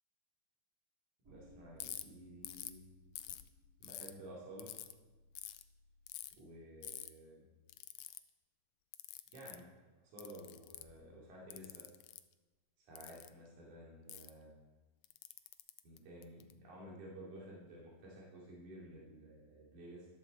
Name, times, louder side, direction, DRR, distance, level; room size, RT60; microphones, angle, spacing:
sound 1, 1.2-6.3, equal, 35° right, 2.3 m, -64 dB
voice 1, 1.3-2.8 3.8-4.7 6.4-7.4 9.3-9.6 10.0-11.8 12.9-14.5 15.8-20.1, right 1 dB, 75° right, -5 dB, 4.3 m, -53 dB
Ratchet pawl, 1.8-2.0 2.5-2.8 3.2-4.1 4.6-4.9 5.4-5.6 6.1-6.3 6.8-7.1 7.7-8.2 8.9-9.6 10.2-11.0 11.5-12.2 13.0-13.3 14.1-14.3 15.0-16.5, left 14 dB, 80° left, 1.9 m, -48 dB
13.5 x 11.0 x 4.4 m, 1.2 s
omnidirectional pair, 3.6 m